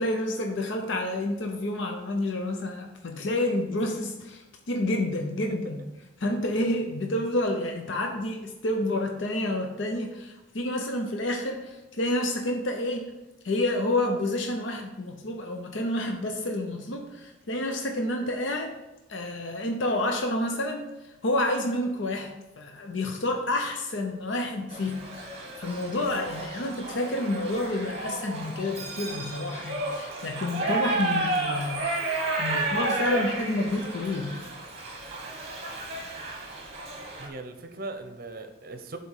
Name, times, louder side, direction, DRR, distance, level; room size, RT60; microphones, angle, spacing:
voice 1, 0.0-5.8 6.2-13.1 13.4-18.7 19.1-22.3 22.6-34.4, left 1 dB, 70° left, 3 dB, 0.7 m, -29 dB
Shout / Livestock farm animals working animals, 24.7-37.3, right 2 dB, 30° right, 1.2 m, -32 dB
voice 2, 32.5-32.9 33.1-33.3 37.2-39.0, right 2 dB, 50° right, 7 dB, 0.7 m, -39 dB
7.1 x 4.2 x 6.5 m, 1.0 s
head